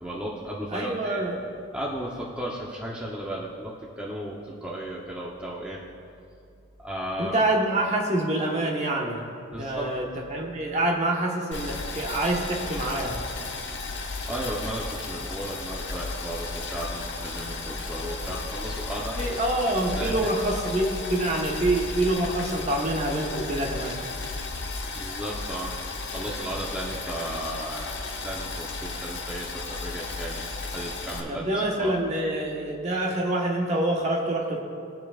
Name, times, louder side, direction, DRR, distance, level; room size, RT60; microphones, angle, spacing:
voice 1, 0.0-1.2 1.7-5.8 6.8-7.3 9.5-9.9 14.3-19.2 20.0-20.6 24.9-25.7 26.1-27.9 28.2-30.4 30.7-31.5 31.8-31.9, right 1 dB, 5° right, -5 dB, 0.8 m, -35 dB
voice 2, 0.7-1.4 7.2-9.3 9.6-13.2 19.2-24.0 31.3-34.6, right 1 dB, 35° right, -1 dB, 1.3 m, -26 dB
Boiling, 11.5-31.2, left 3 dB, 55° left, 1.2 m, -34 dB
19.5 x 7.6 x 2.5 m, 2.4 s
head